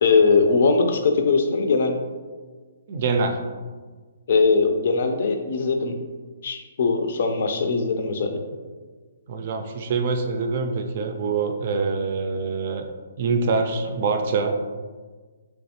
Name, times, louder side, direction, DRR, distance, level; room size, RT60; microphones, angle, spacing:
voice 1, 0.0-2.0 4.3-6.0 6.4-8.4, left 4 dB, 60° left, 5 dB, 0.4 m, -20 dB
voice 2, 2.9-3.4 9.3-12.8 13.2-14.6, right 4 dB, 50° right, 5 dB, 0.4 m, -24 dB
3.4 x 3.1 x 2.7 m, 1.4 s
hypercardioid pair, 145°, 0 cm